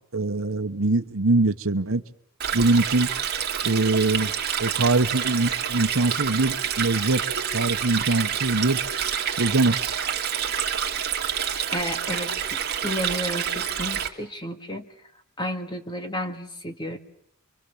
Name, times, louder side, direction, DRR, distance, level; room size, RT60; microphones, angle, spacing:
voice 1, 0.1-2.0 2.5-3.1 3.6-4.3 4.6-7.2 7.5-8.8 9.4-9.8, right 3 dB, 60° right, 1.1 m, -22 dB
Stream, 2.4-14.1, right 8 dB, 45° right, 2.8 m, -28 dB
voice 2, 11.7-14.9 15.4-17.0, equal, 20° left, 2.0 m, -32 dB
28.0 x 24.5 x 7.1 m
head